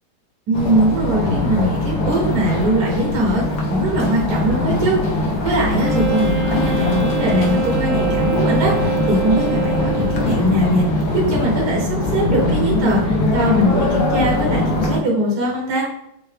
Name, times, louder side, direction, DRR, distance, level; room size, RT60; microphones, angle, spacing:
sound 1, 0.5-15.0, left 2 dB, 65° left, 1.1 m, -21 dB
voice 1, 0.5-11.0 11.3-15.9, right 1 dB, 60° right, -2 dB, 1.2 m, -21 dB
Wind instrument woodwind instrument, 5.8-10.5, right 4 dB, 85° right, 1.7 m, -25 dB
3.7 x 2.7 x 3.2 m, 0.78 s
omnidirectional pair, 2.1 m